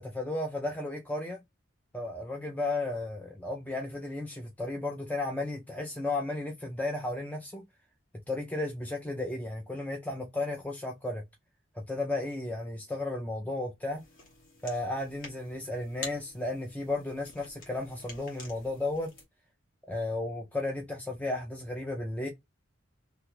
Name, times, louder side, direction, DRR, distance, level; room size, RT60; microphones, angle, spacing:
voice 1, 0.0-1.4 1.9-7.6 8.3-11.2 11.7-14.0 14.6-19.1 19.9-22.3, left 2 dB, 10° left, 0.4 m, -34 dB
sound 1, 13.9-19.3, left 2 dB, 45° left, 1.1 m, -48 dB
2.9 x 2.3 x 3.0 m
head